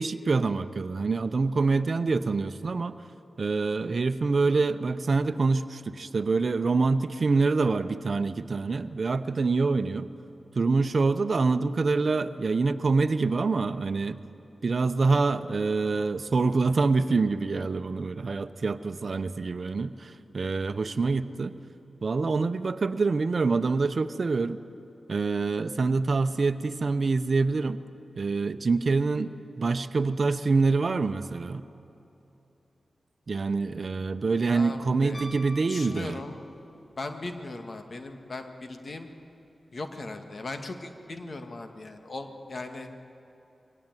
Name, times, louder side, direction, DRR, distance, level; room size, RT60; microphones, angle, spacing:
voice 1, 0.0-3.0 3.4-10.1 10.6-14.2 14.6-21.5 22.0-24.6 25.1-27.8 28.2-31.6 33.3-36.2, right 4 dB, 60° right, 10 dB, 0.9 m, -26 dB
voice 2, 34.5-35.3 35.7-36.4 37.0-39.1 39.7-42.9, left 2 dB, 60° left, 6 dB, 2.0 m, -38 dB
Piano, 35.1-36.7 39.1-39.2, equal, 40° left, 4.7 m, -46 dB
23.0 x 18.0 x 9.2 m, 2.9 s
cardioid pair, 40°, 0 cm